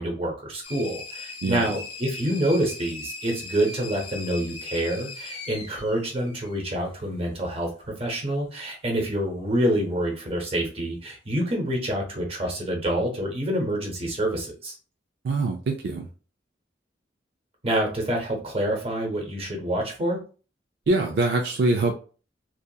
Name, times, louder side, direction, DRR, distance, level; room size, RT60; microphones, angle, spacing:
voice 1, 0.0-7.7 8.0-14.7 17.6-20.2, right 1 dB, 35° right, 1 dB, 0.8 m, -27 dB
sound 1, 0.6-7.0, left 3 dB, 30° left, 0.6 m, -39 dB
voice 2, 15.2-16.1 20.9-21.9, right 2 dB, 65° right, 3 dB, 0.3 m, -23 dB
2.7 x 2.3 x 2.3 m, 0.37 s
head